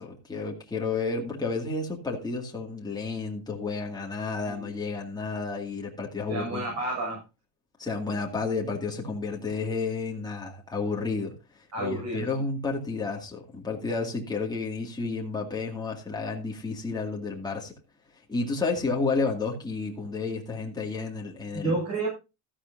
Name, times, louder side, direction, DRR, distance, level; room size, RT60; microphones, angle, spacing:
voice 1, 0.0-6.7 7.8-17.7 18.3-21.8, left 4 dB, 10° left, -1 dB, 2.2 m, -31 dB
voice 2, 6.3-7.2 11.7-12.3 21.5-22.1, right 2 dB, 35° right, -2 dB, 6.8 m, -30 dB
14.0 x 11.5 x 2.7 m, 0.27 s
cardioid pair, 165°, 46 cm